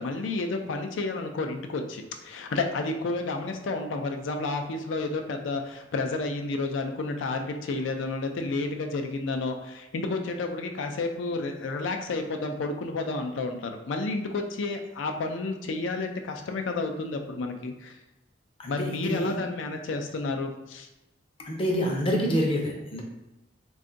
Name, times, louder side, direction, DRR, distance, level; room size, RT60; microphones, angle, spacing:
voice 1, 0.0-18.0 18.7-20.9, left 3 dB, 80° left, 5 dB, 0.4 m, -31 dB
voice 2, 18.6-19.4 21.4-23.0, equal, 30° left, 0 dB, 0.5 m, -27 dB
2.5 x 2.3 x 3.8 m, 0.98 s
head